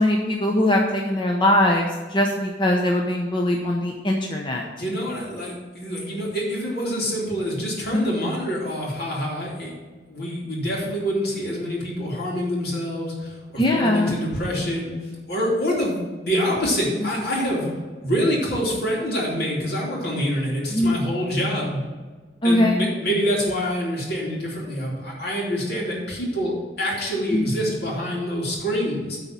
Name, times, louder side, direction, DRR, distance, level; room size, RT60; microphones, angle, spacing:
voice 1, 0.0-4.6 7.9-8.1 13.6-14.2 17.0-17.1 20.7-21.0 22.4-22.8 27.3-27.5, left 1 dB, 30° left, 0 dB, 0.7 m, -21 dB
voice 2, 4.8-9.7 10.1-13.4 13.7-14.9 15.3-17.7 18.0-21.8 22.4-29.2, equal, 65° left, -3 dB, 2.9 m, -26 dB
9.6 x 4.1 x 7.3 m, 1.3 s
head